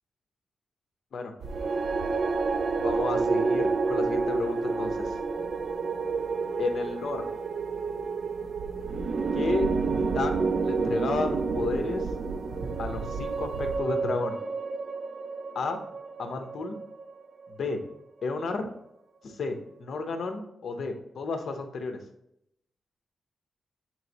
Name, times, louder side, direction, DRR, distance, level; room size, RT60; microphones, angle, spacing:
sound 1, 1.4-17.7, right 4 dB, 50° right, 0.4 m, -30 dB
sound 2, 1.4-13.8, right 3 dB, 85° right, 0.7 m, -41 dB
voice 1, 2.8-5.2 6.6-7.3 9.3-9.7 10.0-12.1 12.8-14.4 15.5-15.8 16.2-16.8 17.6-17.8 18.2-18.7 19.2-22.0, left 4 dB, 60° left, 5 dB, 0.8 m, -32 dB
sound 3, 5.3-13.3, left 1 dB, 20° left, 0.7 m, -45 dB
7.6 x 3.1 x 4.0 m, 0.78 s
wide cardioid pair, 130°, 0 cm